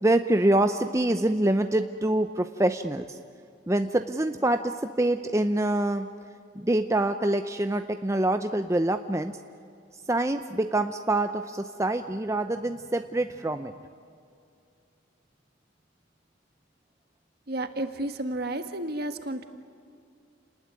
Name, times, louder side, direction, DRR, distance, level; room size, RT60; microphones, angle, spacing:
voice 1, 0.0-3.2 3.7-6.1 6.5-9.4 10.1-13.7, right 1 dB, 15° right, 7 dB, 0.6 m, -25 dB
voice 2, 17.5-19.4, right 1 dB, 50° right, 7 dB, 1.6 m, -31 dB
30.0 x 19.5 x 9.6 m, 2.4 s
head